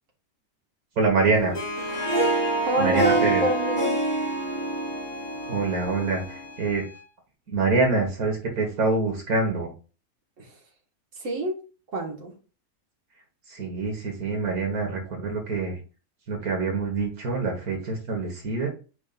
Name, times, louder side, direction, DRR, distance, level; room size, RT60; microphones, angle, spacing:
voice 1, 1.0-1.5 2.8-3.4 5.5-6.8 7.5-9.7 13.5-15.8 16.3-18.7, right 3 dB, 80° right, 2.0 m, -25 dB
Harp, 1.3-6.6, right 2 dB, 55° left, 2.2 m, -27 dB
Bowed string instrument, 1.5-7.1, left 6 dB, 40° left, 1.0 m, -43 dB
voice 2, 2.6-4.0 10.4-10.6 11.1-11.5 11.9-12.3, equal, 55° right, 2.1 m, -27 dB
8.4 x 5.2 x 2.5 m
omnidirectional pair, 1.6 m